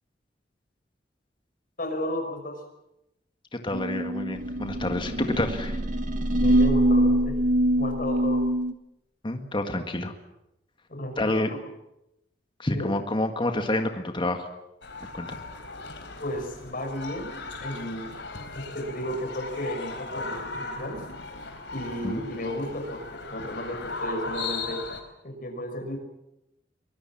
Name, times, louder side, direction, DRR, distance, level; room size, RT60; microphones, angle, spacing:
voice 1, 1.8-2.6 6.3-7.4 7.7-8.4 10.9-11.6 12.7-12.9 16.2-18.1 18.5-21.0 21.7-24.8 25.2-26.0, left 1 dB, 50° left, 4 dB, 5.9 m, -33 dB
voice 2, 3.5-5.8 9.2-10.1 11.2-11.5 12.6-14.5 15.0-15.4 22.0-22.2, left 1 dB, 30° left, 5 dB, 1.9 m, -28 dB
sound 1, 3.7-8.7, right 1 dB, 45° right, 2.1 m, -24 dB
sound 2, 14.8-25.0, left 3 dB, 75° left, 4.1 m, -37 dB
24.0 x 21.0 x 7.4 m, 0.89 s
head